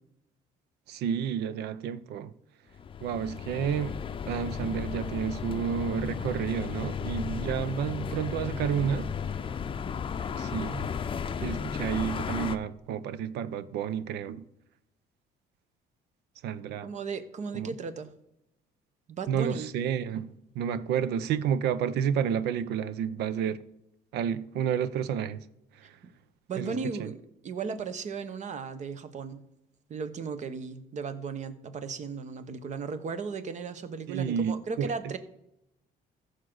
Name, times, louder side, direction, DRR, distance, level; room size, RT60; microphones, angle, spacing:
voice 1, 0.9-2.3 3.0-4.0 4.3-9.1 10.4-10.9 11.4-14.4 16.4-16.9 17.5-17.7 19.3-23.6 24.1-25.5 25.7-26.0 26.6-27.1 34.1-35.2, right 8 dB, 80° right, 0.6 m, -31 dB
sound 1, 2.7-12.6, left 6 dB, 30° left, 0.6 m, -34 dB
voice 2, 16.8-18.1 19.2-19.7 26.5-29.4 29.9-35.2, right 5 dB, 45° right, 1.0 m, -36 dB
14.5 x 6.5 x 3.9 m
cardioid pair, 110°, 17 cm